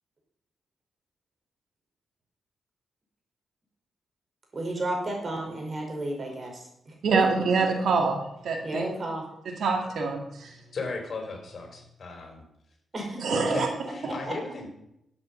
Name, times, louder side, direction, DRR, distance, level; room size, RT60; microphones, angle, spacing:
voice 1, 4.5-6.6 6.9-7.0 8.6-9.2 12.9-13.2 13.8-14.1, right 1 dB, 40° right, 1 dB, 5.2 m, -32 dB
voice 2, 7.0-8.8 9.5-10.6 13.2-13.7, right 4 dB, 75° right, 3 dB, 2.3 m, -25 dB
voice 3, 10.7-12.4 13.5-14.7, left 3 dB, 55° left, 2 dB, 4.3 m, -36 dB
13.5 x 8.7 x 5.7 m, 0.80 s
cardioid pair, 75°, 0 cm